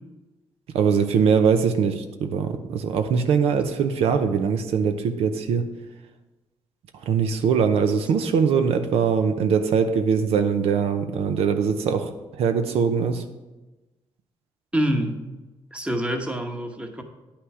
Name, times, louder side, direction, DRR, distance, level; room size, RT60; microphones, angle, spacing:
voice 1, 0.7-5.6 7.0-13.2, right 6 dB, 85° right, 7 dB, 0.7 m, -22 dB
voice 2, 14.7-15.3 15.7-17.0, equal, 10° right, 5 dB, 1.1 m, -26 dB
9.9 x 5.9 x 4.8 m, 1.1 s
cardioid pair, 110°, 10 cm